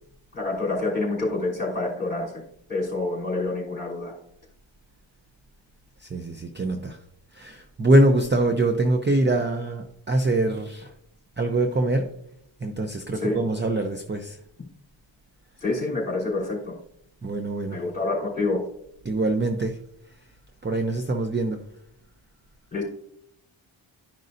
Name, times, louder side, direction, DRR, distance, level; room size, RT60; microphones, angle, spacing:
voice 1, 0.3-2.4 2.7-4.1 13.1-13.4 15.6-16.7 17.7-18.6 22.7-22.8, left 2 dB, 20° left, -4 dB, 3.2 m, -27 dB
voice 2, 6.0-7.0 7.3-10.9 11.4-12.1 12.6-14.4 17.2-17.8 19.0-19.8 20.6-21.6, right 1 dB, 25° right, 5 dB, 0.6 m, -24 dB
12.0 x 5.3 x 2.6 m, 0.73 s
wide cardioid pair, 95°, 48 cm